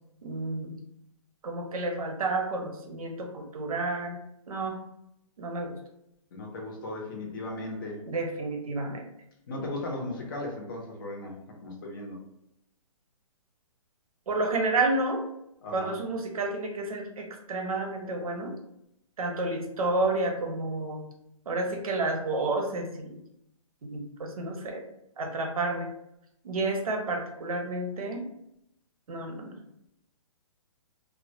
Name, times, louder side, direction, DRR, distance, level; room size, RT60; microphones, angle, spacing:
voice 1, 0.2-0.8 1.4-4.2 4.5-4.8 5.4-5.8 8.1-9.1 14.3-15.2 15.7-18.5 19.2-21.0 21.5-23.2 23.9-24.8 25.2-25.9 26.4-28.3 29.1-29.6, right 2 dB, 90° right, 2 dB, 0.7 m, -30 dB
voice 2, 6.3-8.0 9.5-12.2 15.6-16.0, left 2 dB, 35° left, 0 dB, 0.6 m, -37 dB
2.1 x 2.1 x 2.7 m, 0.79 s
hypercardioid pair, 165°, 18 cm